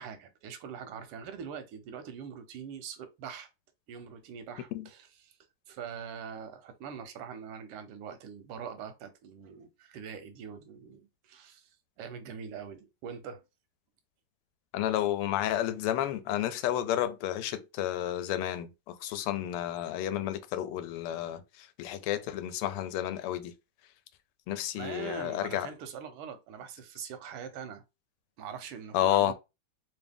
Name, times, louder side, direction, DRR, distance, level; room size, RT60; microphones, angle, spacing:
voice 1, 0.0-3.5 3.9-5.4 5.7-13.4 19.1-19.2 19.8-20.0 24.7-27.8 28.4-29.3, right 7 dB, 90° right, 1.7 m, -43 dB
voice 2, 14.7-21.4 21.8-23.5 24.5-25.7 28.9-29.3, left 12 dB, 90° left, 1.5 m, -31 dB
3.6 x 2.6 x 3.5 m
omnidirectional pair, 2.4 m